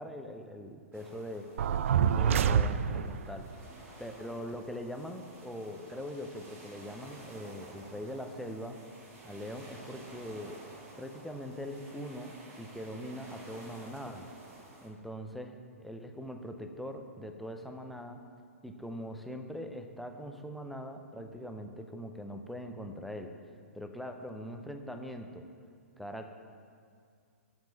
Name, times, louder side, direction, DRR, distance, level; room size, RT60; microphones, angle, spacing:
voice 1, 0.0-1.5 2.1-3.5 4.0-8.8 9.2-10.6 11.0-14.3 14.8-18.2 18.6-23.4 23.7-25.5 26.0-26.3, equal, ahead, 5 dB, 0.5 m, -42 dB
sound 1, 0.9-14.9, right 2 dB, 25° right, 1.7 m, -52 dB
sound 2, 1.6-3.3, right 8 dB, 60° right, 0.3 m, -26 dB
7.3 x 5.3 x 7.3 m, 2.2 s
figure-of-eight pair, 120°, 8 cm